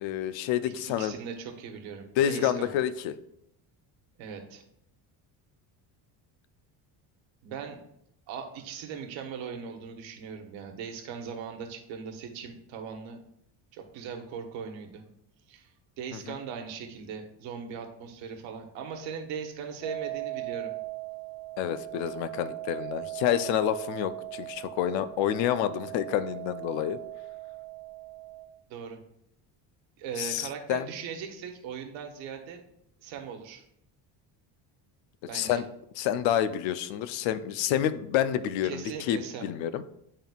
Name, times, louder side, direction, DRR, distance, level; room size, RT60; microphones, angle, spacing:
voice 1, 0.0-1.1 2.2-3.1 21.6-27.0 30.2-30.9 35.3-35.6 36.0-39.8, left 10 dB, 75° left, 12 dB, 0.6 m, -28 dB
voice 2, 0.9-2.7 4.2-4.6 7.4-7.8 8.3-13.2 13.7-15.0 15.5-20.7 28.7-29.0 30.0-32.6 33.0-33.6 35.2-35.6 38.6-39.5, right 6 dB, 80° right, 4 dB, 1.2 m, -39 dB
sound 1, 19.8-28.4, right 16 dB, 10° left, 1.0 m, -39 dB
11.0 x 3.7 x 2.3 m, 0.75 s
cardioid pair, 115°, 45 cm